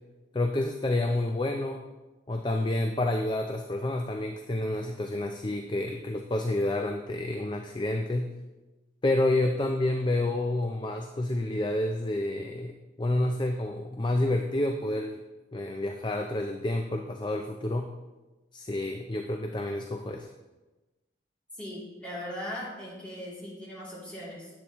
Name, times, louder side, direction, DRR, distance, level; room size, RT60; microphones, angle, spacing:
voice 1, 0.3-1.8 2.3-8.3 9.0-15.2 15.5-17.9 18.5-20.3, left 1 dB, 25° left, 4 dB, 0.4 m, -29 dB
voice 2, 21.6-24.5, equal, 5° left, -8 dB, 2.9 m, -39 dB
10.5 x 8.6 x 3.0 m, 1.1 s
head